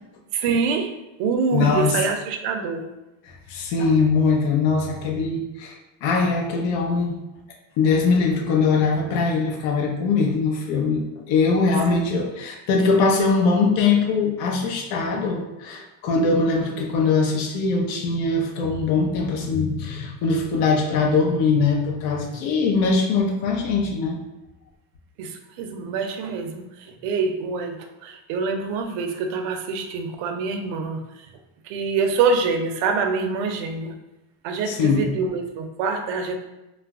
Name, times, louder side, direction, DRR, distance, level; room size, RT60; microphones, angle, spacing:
voice 1, 0.3-0.9 1.2-2.9 11.9-12.0 25.2-31.3 31.6-34.0 34.4-36.4, right 4 dB, 70° right, 5 dB, 0.6 m, -25 dB
voice 2, 1.5-2.0 3.3-7.2 7.8-24.2 34.7-35.1, left 4 dB, 65° left, 0 dB, 0.7 m, -22 dB
2.4 x 2.0 x 3.4 m, 0.99 s
cardioid pair, 125°, 49 cm